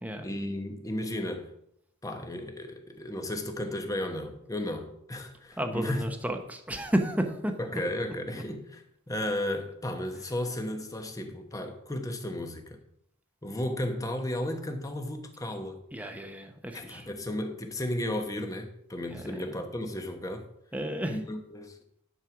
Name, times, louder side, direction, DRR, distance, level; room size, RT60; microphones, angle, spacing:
voice 1, 0.2-1.5 2.0-6.1 7.6-12.8 13.4-15.8 16.7-20.5 21.1-21.8, left 1 dB, 15° left, 1.1 m, -34 dB
voice 2, 5.6-7.5 15.9-17.1 19.1-19.5 20.7-21.2, right 1 dB, 5° right, 0.9 m, -32 dB
11.0 x 4.5 x 6.0 m
head